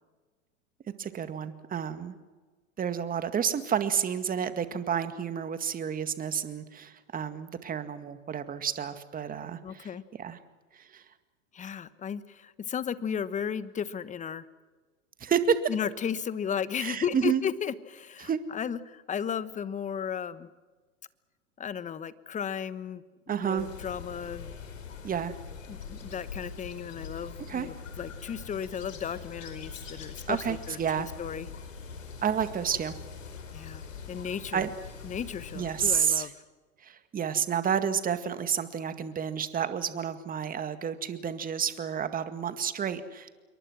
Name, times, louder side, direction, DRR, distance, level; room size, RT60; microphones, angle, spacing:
voice 1, 1.0-2.2 2.8-9.9 10.2-10.4 10.9-11.0 15.2-15.6 16.8-17.4 18.2-18.4 23.3-23.7 25.0-25.3 27.5-27.7 30.3-31.1 32.2-33.0 34.5-34.7 35.6-36.3 36.8-43.3, right 8 dB, 20° right, 10 dB, 2.0 m, -30 dB
voice 2, 9.6-10.0 11.5-14.5 15.7-20.5 21.6-24.5 25.7-30.8 31.2-31.5 33.5-34.7 35.0-36.3, left 7 dB, 20° left, 15 dB, 1.2 m, -35 dB
sound 1, 23.6-36.0, left 5 dB, 80° left, 4.7 m, -43 dB
27.5 x 23.5 x 6.2 m, 1.3 s
hypercardioid pair, 105°, 38 cm